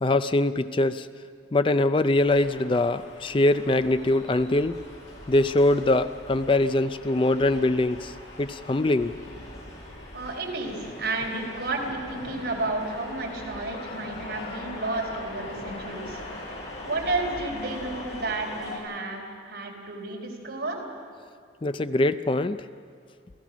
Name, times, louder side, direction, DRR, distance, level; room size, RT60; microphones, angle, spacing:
voice 1, 0.0-1.1 1.5-4.7 5.3-8.1 8.4-9.1 21.6-22.6, left 2 dB, 30° left, 12 dB, 0.4 m, -23 dB
sound 1, 2.1-18.8, left 1 dB, 85° left, 6.7 m, -41 dB
voice 2, 10.1-16.2 16.8-20.8, right 2 dB, 70° right, -1 dB, 4.2 m, -31 dB
28.5 x 16.0 x 6.1 m, 2.2 s
head